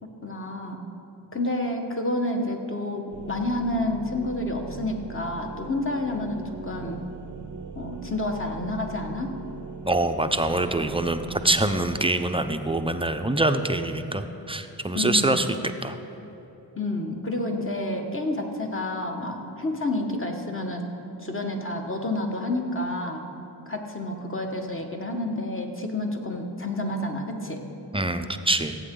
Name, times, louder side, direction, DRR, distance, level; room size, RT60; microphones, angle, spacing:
voice 1, 0.2-0.8 1.3-7.0 7.7-9.3 14.9-15.4 16.8-20.8 21.2-23.2 23.7-27.6, left 1 dB, 30° left, 2 dB, 1.6 m, -29 dB
sound 1, 3.1-12.0, right 5 dB, 45° right, 0.7 m, -40 dB
voice 2, 9.8-15.5 15.8-16.0 27.9-28.8, right 2 dB, 10° right, 8 dB, 0.7 m, -25 dB
16.5 x 8.1 x 3.9 m, 3.0 s
cardioid pair, 45°, 44 cm